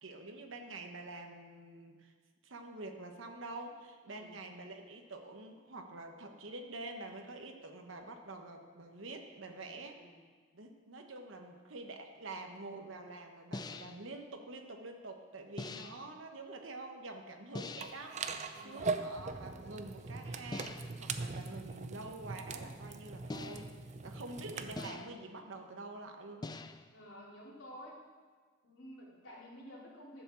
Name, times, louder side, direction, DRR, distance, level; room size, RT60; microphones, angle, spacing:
voice 1, 0.0-2.1 2.4-10.0 10.5-23.7 24.0-26.5, right 2 dB, 85° right, 4 dB, 1.2 m, -47 dB
voice 2, 4.0-4.4 9.9-10.2 15.6-16.0 18.5-18.9 26.9-28.0 28.6-30.2, equal, 85° left, -5 dB, 3.3 m, -52 dB
sound 1, 13.5-14.1 15.6-16.1 17.5-18.1 20.5-21.1 23.3-23.9 24.8-25.3 26.4-27.0, left 2 dB, 20° left, 0.4 m, -44 dB
sound 2, 17.8-24.9, right 4 dB, 35° right, 0.5 m, -41 dB
11.5 x 7.2 x 7.0 m, 1.5 s
head